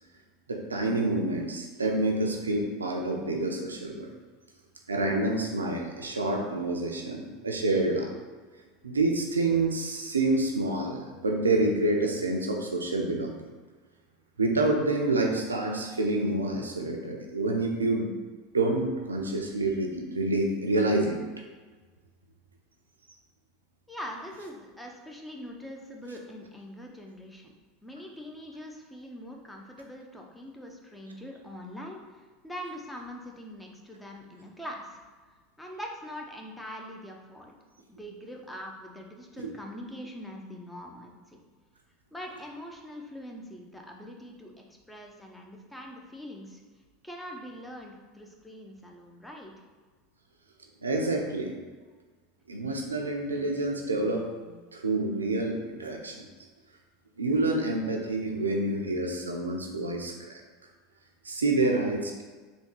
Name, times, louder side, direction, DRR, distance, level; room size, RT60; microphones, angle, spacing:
voice 1, 0.5-4.1 4.9-8.1 8.8-13.4 14.4-18.1 18.5-21.2 39.4-39.5 50.8-51.5 52.5-56.3 57.2-60.4 61.2-62.2, right 2 dB, 85° right, 1 dB, 0.4 m, -28 dB
voice 2, 23.9-27.5 27.8-35.0 35.6-37.5 37.9-41.4 42.1-46.6 47.0-49.5, equal, 5° left, 0 dB, 0.5 m, -43 dB
3.4 x 2.2 x 3.0 m, 1.4 s
figure-of-eight pair, 75°, 0 cm